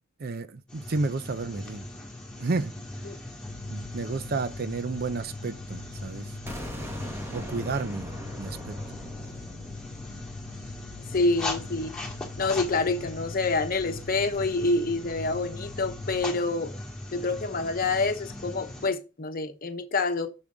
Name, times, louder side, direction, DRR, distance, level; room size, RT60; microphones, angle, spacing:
voice 1, 0.2-1.8 2.4-2.7 3.7-6.3 7.3-8.1 8.4-8.8, right 3 dB, 50° right, 0.5 m, -31 dB
sound 1, 0.7-18.9, left 2 dB, 5° left, 2.2 m, -40 dB
Mechanical fan, 3.5-16.2, left 4 dB, 65° left, 0.4 m, -44 dB
sound 2, 6.5-12.2, equal, 10° right, 1.7 m, -41 dB
voice 2, 11.1-12.0 12.4-16.7 17.1-20.3, left 3 dB, 45° left, 1.0 m, -27 dB
7.0 x 6.4 x 3.9 m
head